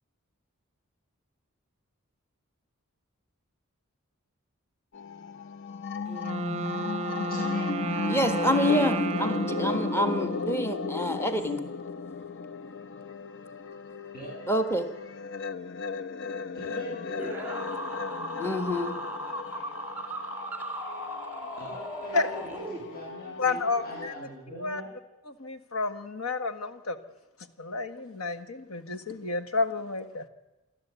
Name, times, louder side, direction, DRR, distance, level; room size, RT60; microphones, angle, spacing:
sound 1, 4.9-24.1, left 4 dB, 60° left, 0.8 m, -35 dB
Wind instrument woodwind instrument, 6.1-10.9, right 4 dB, 30° right, 0.7 m, -34 dB
voice 1, 7.3-7.8 14.1-14.3 16.5-17.5 21.6-24.9, equal, 45° left, -6 dB, 8.0 m, -41 dB
voice 2, 8.1-11.6 14.5-14.9 18.3-19.0, equal, 10° left, 7 dB, 1.4 m, -27 dB
sound 2, 17.2-23.2, right 1 dB, 10° right, 2.0 m, -37 dB
voice 3, 23.4-24.1 24.6-24.8 25.3-27.0 27.6-30.3, left 3 dB, 75° left, 9 dB, 1.5 m, -30 dB
28.0 x 12.0 x 8.3 m, 1.1 s
head